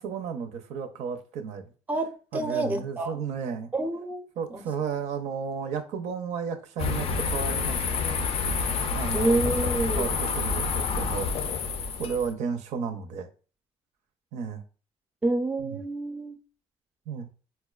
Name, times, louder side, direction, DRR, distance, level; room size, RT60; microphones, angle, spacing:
voice 1, 0.0-1.7 2.3-3.7 4.4-8.2 8.9-9.4 10.0-11.5 12.0-13.3 14.3-14.6 15.6-15.8 17.1-17.3, right 6 dB, 80° right, 0.5 m, -33 dB
voice 2, 1.9-3.2 3.7-4.3 4.5-4.6 9.1-10.2 15.2-16.4, right 2 dB, 15° right, 0.4 m, -28 dB
sound 1, 6.8-12.3, left 5 dB, 55° left, 0.4 m, -28 dB
4.3 x 2.1 x 2.3 m
cardioid pair, 105°, 12 cm